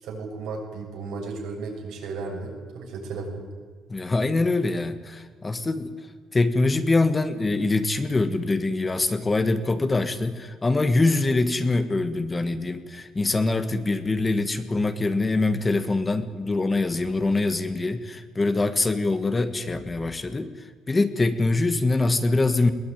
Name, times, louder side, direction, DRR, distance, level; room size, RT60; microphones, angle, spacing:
voice 1, 0.0-3.4, right 4 dB, 85° right, 0 dB, 6.7 m, -34 dB
voice 2, 3.9-5.9 6.3-20.5 20.9-22.7, left 2 dB, 20° left, 10 dB, 1.6 m, -24 dB
21.5 x 19.0 x 9.5 m, 1.6 s
cardioid pair, 120°, 0 cm